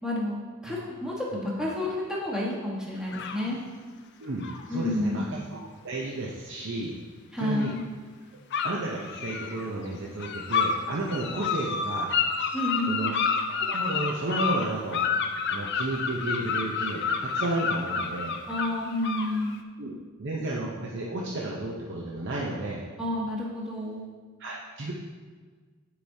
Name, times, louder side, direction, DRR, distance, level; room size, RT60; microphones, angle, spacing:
voice 1, 0.0-3.6 4.7-5.3 7.3-7.8 12.5-13.1 18.5-19.6 23.0-24.1, left 1 dB, 5° right, -5 dB, 1.3 m, -30 dB
sound 1, 3.1-3.5 4.4-4.6 7.6-7.8 8.5-9.6 10.2-10.8 11.1-19.6, left 5 dB, 55° left, 0.5 m, -29 dB
voice 2, 4.2-7.0 7.4-7.7 8.6-12.1 12.9-13.1 13.5-15.0 15.5-18.4 19.8-22.9 24.4-24.9, right 2 dB, 60° right, -3 dB, 0.7 m, -33 dB
10.0 x 4.8 x 2.7 m, 1.5 s
head